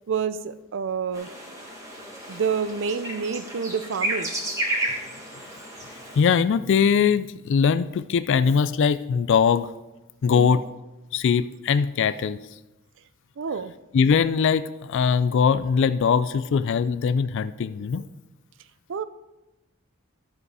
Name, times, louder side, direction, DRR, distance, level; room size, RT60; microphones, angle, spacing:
voice 1, 0.1-1.3 2.3-4.3 10.3-10.6 13.4-13.7 18.9-19.0, right 6 dB, 60° right, 13 dB, 0.5 m, -28 dB
sound 1, 1.1-6.2, right 1 dB, 15° right, 1.7 m, -32 dB
voice 2, 6.2-9.7 10.2-10.6 11.1-12.4 13.9-18.0, left 6 dB, 60° left, 13 dB, 0.4 m, -21 dB
13.5 x 5.3 x 4.8 m, 1.0 s
head